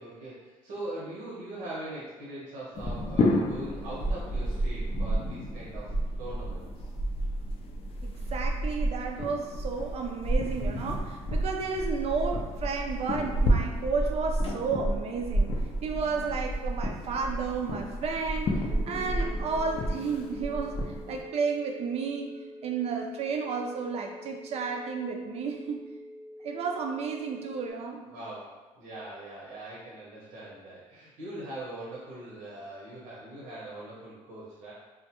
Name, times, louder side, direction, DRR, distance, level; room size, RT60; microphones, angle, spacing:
voice 1, 0.0-6.9 28.1-34.7, right 1 dB, 85° right, -8 dB, 0.8 m, -41 dB
sound 1, 2.7-21.2, equal, 45° left, 0.4 m, -30 dB
voice 2, 8.0-15.5 15.8-20.7 21.1-22.3 22.6-25.8 26.4-28.0 28.9-29.0, right 5 dB, 50° right, 2 dB, 0.4 m, -32 dB
sound 2, 18.7-27.7, left 1 dB, 10° right, 0.7 m, -47 dB
2.1 x 2.1 x 2.8 m, 1.3 s
cardioid pair, 90°, 13 cm